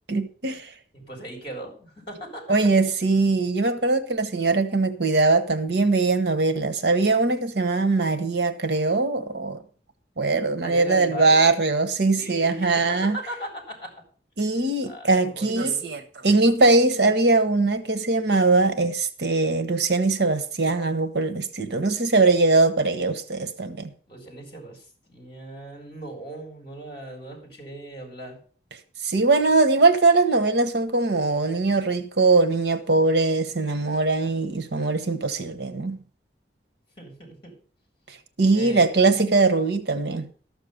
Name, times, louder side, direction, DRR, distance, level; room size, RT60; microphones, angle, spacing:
voice 1, 0.1-0.7 2.5-9.6 10.2-13.2 14.4-23.9 29.0-36.0 38.4-40.3, right 3 dB, 65° right, 1.1 m, -21 dB
voice 2, 0.9-2.4 10.6-11.4 12.2-13.9 14.8-15.9 24.1-28.4 37.0-37.6 38.5-39.1, right 1 dB, 30° left, 3.9 m, -38 dB
13.0 x 6.7 x 6.6 m
head